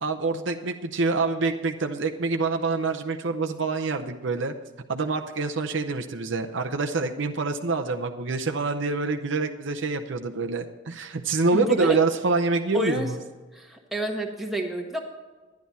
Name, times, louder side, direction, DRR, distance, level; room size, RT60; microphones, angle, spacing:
voice 1, 0.0-4.5 4.9-13.2, right 3 dB, 60° right, 5 dB, 0.7 m, -26 dB
voice 2, 11.5-12.0 12.7-13.1 13.5-15.0, right 1 dB, ahead, 0 dB, 1.3 m, -29 dB
11.5 x 10.5 x 4.2 m, 1.3 s
head